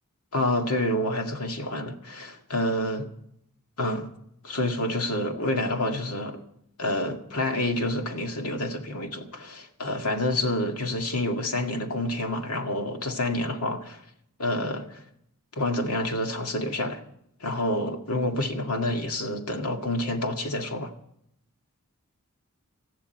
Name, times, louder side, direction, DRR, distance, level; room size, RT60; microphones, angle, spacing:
voice 1, 0.3-3.1 3.8-4.1 4.4-6.4 6.8-14.0 14.4-15.0 15.6-17.0 17.4-20.9, left 1 dB, 90° left, 2.0 m, -28 dB
19.0 x 14.0 x 4.5 m
head